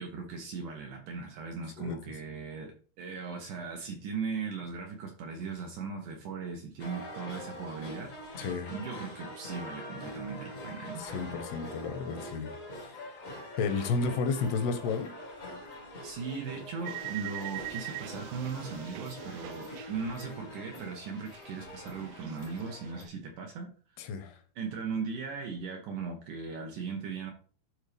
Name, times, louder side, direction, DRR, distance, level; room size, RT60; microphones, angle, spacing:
voice 1, 0.0-8.1 8.7-11.1 16.0-23.7 24.6-27.3, right 5 dB, 70° right, 2 dB, 2.1 m, -38 dB
sound 1, 6.8-23.0, left 1 dB, 60° left, 0.8 m, -44 dB
voice 2, 8.4-8.7 11.0-12.5 12.9-13.1 13.6-15.1 24.0-24.4, left 4 dB, 80° left, 9 dB, 2.8 m, -32 dB
sound 2, 16.9-20.8 21.0-22.9, right 15 dB, 85° right, 2.0 m, -43 dB
12.0 x 4.4 x 3.3 m, 0.40 s
omnidirectional pair, 4.7 m